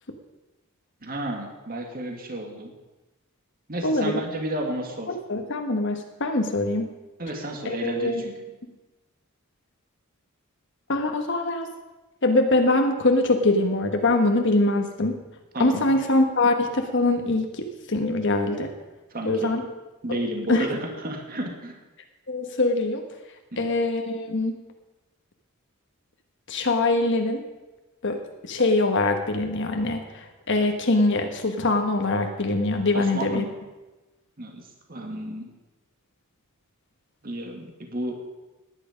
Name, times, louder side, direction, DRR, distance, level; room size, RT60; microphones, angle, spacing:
voice 1, 1.0-2.7 3.7-5.1 7.2-8.3 15.5-16.0 19.1-19.6 20.0-21.8 23.5-23.7 32.9-33.5 34.4-35.5 37.2-38.3, right 1 dB, 45° right, 2 dB, 2.2 m, -32 dB
voice 2, 3.8-4.2 5.1-6.9 7.6-8.2 10.9-11.7 12.2-15.2 15.6-18.7 19.2-19.6 20.5-20.7 22.3-23.0 23.6-24.5 26.5-27.4 28.0-33.4, left 2 dB, 60° left, 4 dB, 1.4 m, -23 dB
18.0 x 9.8 x 5.2 m, 1.1 s
head